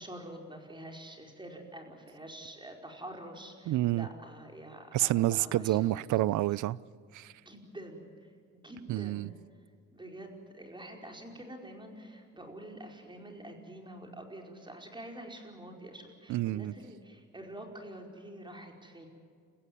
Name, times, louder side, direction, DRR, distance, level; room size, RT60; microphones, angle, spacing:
voice 1, 0.0-6.0 7.4-8.1 8.5-9.3 9.9-19.1, right 1 dB, 15° right, 4.8 m, -47 dB
voice 2, 3.7-4.1 4.9-6.8 7.1-7.3 8.9-9.3 16.3-16.7, right 15 dB, 80° right, 0.6 m, -28 dB
29.5 x 15.5 x 9.5 m
cardioid pair, 90°, 30 cm